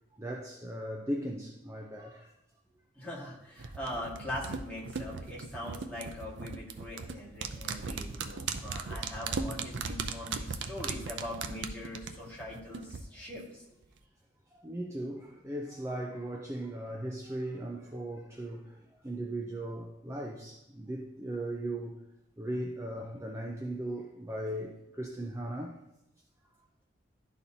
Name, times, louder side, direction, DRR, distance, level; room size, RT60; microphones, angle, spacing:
voice 1, 0.1-2.3 14.5-21.9 22.4-25.8, right 1 dB, 15° right, 0 dB, 0.5 m, -38 dB
voice 2, 3.0-13.6, left 1 dB, 5° left, -6 dB, 1.7 m, -42 dB
sound 1, 3.6-13.0 13.3-13.4, right 5 dB, 70° right, 0.5 m, -37 dB
11.5 x 4.1 x 2.8 m, 0.84 s
head